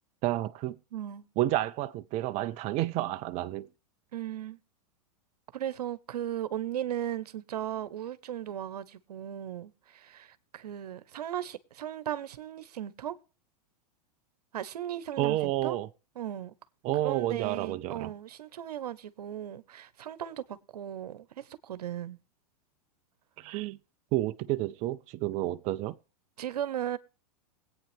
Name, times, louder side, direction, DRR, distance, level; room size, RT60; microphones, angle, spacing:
voice 1, 0.2-0.8 1.4-3.7 15.2-15.9 16.8-18.1 23.4-23.8 24.1-26.0, right 15 dB, 35° right, 0.5 m, -30 dB
voice 2, 0.9-1.2 4.1-4.6 5.5-13.2 14.5-15.8 16.2-16.5 17.0-22.2 26.4-27.0, right 11 dB, 80° right, 1.0 m, -37 dB
21.0 x 8.8 x 3.4 m
hypercardioid pair, 120°, 20 cm